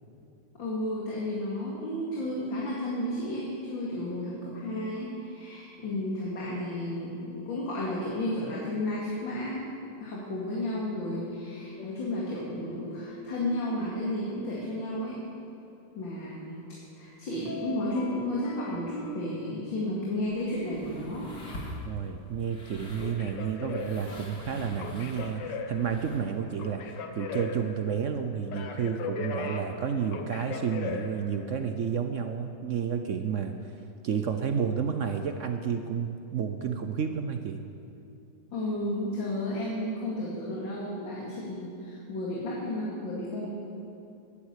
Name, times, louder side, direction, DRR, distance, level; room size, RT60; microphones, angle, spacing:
voice 1, 0.6-9.7 10.0-15.2 16.0-16.6 17.0-21.3 38.5-43.5, left 1 dB, 90° left, -5 dB, 3.0 m, -32 dB
sound 1, 11.8-14.7 17.5-19.2 22.8-31.7, left 4 dB, 70° left, 1.6 m, -40 dB
sound 2, 20.1-26.4, left 1 dB, 55° left, 2.6 m, -45 dB
voice 2, 21.9-33.5 34.0-37.6, right 7 dB, 60° right, 7 dB, 0.8 m, -31 dB
13.0 x 10.5 x 8.2 m, 2.6 s
omnidirectional pair, 2.0 m